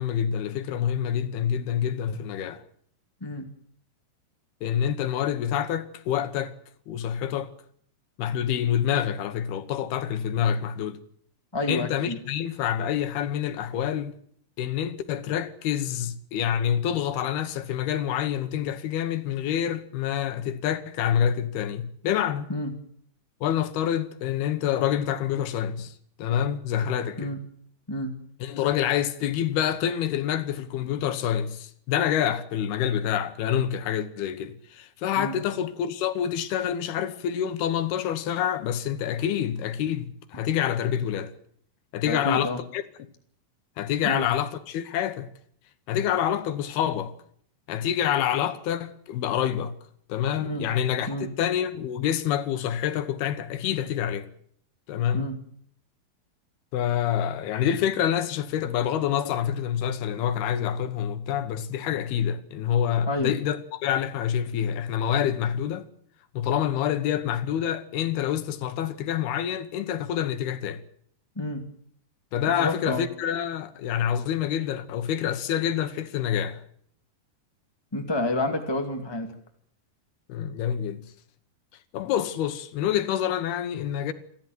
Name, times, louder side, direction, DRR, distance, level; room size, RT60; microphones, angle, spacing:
voice 1, 0.0-2.6 4.6-6.5 6.9-7.5 8.2-11.0 11.7-14.2 14.6-22.5 23.4-27.3 28.4-41.3 41.9-42.8 43.8-45.3 45.9-47.1 47.7-49.7 50.1-54.3 54.9-55.3 56.7-65.9 66.3-70.8 72.3-76.6 80.3-81.0 81.9-84.1, left 9 dB, 80° left, 3.2 m, -27 dB
voice 2, 11.5-12.2 22.5-22.7 27.2-27.4 27.9-28.1 35.2-35.3 42.0-42.6 44.0-44.2 50.4-50.7 51.1-51.3 55.1-55.4 63.1-63.3 71.3-71.6 72.6-73.0 77.9-79.3, left 1 dB, 10° left, 1.3 m, -29 dB
28.5 x 12.0 x 9.3 m
omnidirectional pair, 4.5 m